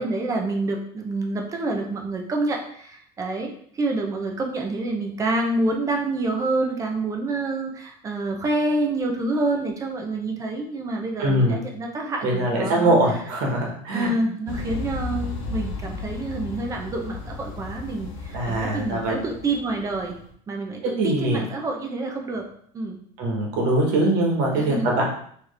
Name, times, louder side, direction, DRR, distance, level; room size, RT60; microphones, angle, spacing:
voice 1, 0.0-12.9 13.9-20.2 20.5-22.4 22.7-23.0 24.6-24.9, right 2 dB, 20° right, 2 dB, 0.6 m, -27 dB
voice 2, 11.2-11.6 12.2-14.1 18.3-19.1 20.8-21.4 23.2-25.0, right 1 dB, 65° right, -1 dB, 1.4 m, -22 dB
sound 1, 14.5-20.3, left 4 dB, 70° left, 0.9 m, -34 dB
4.3 x 3.1 x 3.3 m, 0.63 s
cardioid pair, 155°, 17 cm